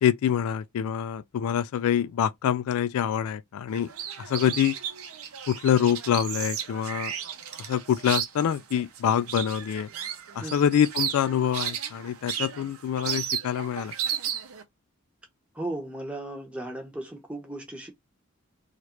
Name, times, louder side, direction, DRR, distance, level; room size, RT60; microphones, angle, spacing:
voice 1, 0.0-3.9 4.2-4.7 5.5-7.1 7.6-9.9 10.4-13.9, left 9 dB, 85° left, 0.3 m, -25 dB
sound 1, 3.7-14.6, right 9 dB, 80° right, 0.6 m, -34 dB
voice 2, 10.4-10.7 15.5-17.9, right 1 dB, 5° right, 0.7 m, -36 dB
3.1 x 2.4 x 2.9 m
head